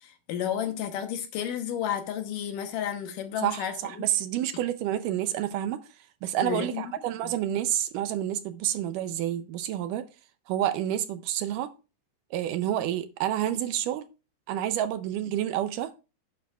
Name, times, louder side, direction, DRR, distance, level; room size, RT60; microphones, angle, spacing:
voice 1, 0.0-4.1 6.4-6.9 7.2-7.3, left 9 dB, 70° left, 2.4 m, -32 dB
voice 2, 3.4-5.8 6.2-10.0 10.5-11.7 12.3-14.0 14.5-15.9, right 11 dB, 80° right, 2.0 m, -29 dB
11.5 x 9.1 x 2.4 m
omnidirectional pair, 4.2 m